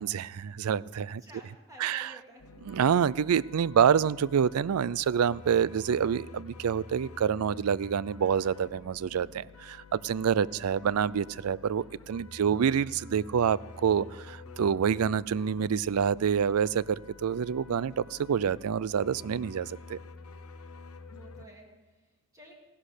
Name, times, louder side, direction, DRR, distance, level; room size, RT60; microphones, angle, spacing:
voice 1, 0.0-1.2 1.8-2.1 2.7-20.0, right 7 dB, 80° right, 21 dB, 0.4 m, -27 dB
voice 2, 1.2-2.4 10.1-10.8 12.4-12.7 21.1-22.5, equal, 15° right, -1 dB, 2.2 m, -53 dB
sound 1, 2.4-21.5, left 4 dB, 90° left, 0.9 m, -49 dB
16.0 x 11.5 x 6.6 m, 1.2 s
head